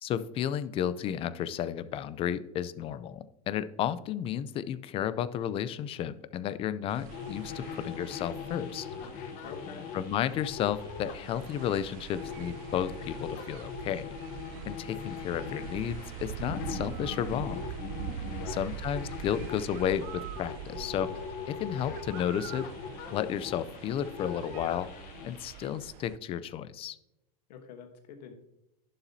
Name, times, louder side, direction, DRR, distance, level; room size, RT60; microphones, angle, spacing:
voice 1, 0.0-8.9 9.9-14.1 14.7-17.6 18.5-21.1 21.5-22.7 23.1-24.9 25.2-27.0, left 10 dB, 25° left, 15 dB, 0.4 m, -32 dB
sound 1, 6.9-26.2, right 10 dB, 60° right, 0.5 m, -43 dB
sound 2, 7.1-25.7, left 7 dB, 45° left, 1.0 m, -41 dB
voice 2, 9.4-9.9 18.2-18.7 27.5-28.3, left 7 dB, 85° left, 5 dB, 1.2 m, -46 dB
11.0 x 7.1 x 2.7 m, 0.88 s
supercardioid pair, 145°, 21 cm